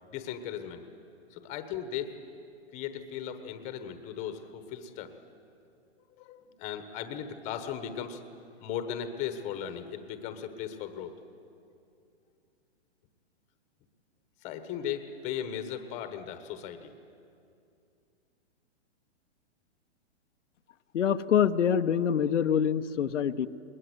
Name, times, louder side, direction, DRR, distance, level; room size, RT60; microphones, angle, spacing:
voice 1, 0.0-0.9 1.3-2.1 2.7-5.1 6.2-8.2 8.6-11.1 14.4-16.9, left 9 dB, 20° left, 9 dB, 1.1 m, -37 dB
voice 2, 20.9-23.5, left 8 dB, 90° left, 9 dB, 0.9 m, -25 dB
21.0 x 20.0 x 8.0 m, 2.5 s
hypercardioid pair, 155°, 35 cm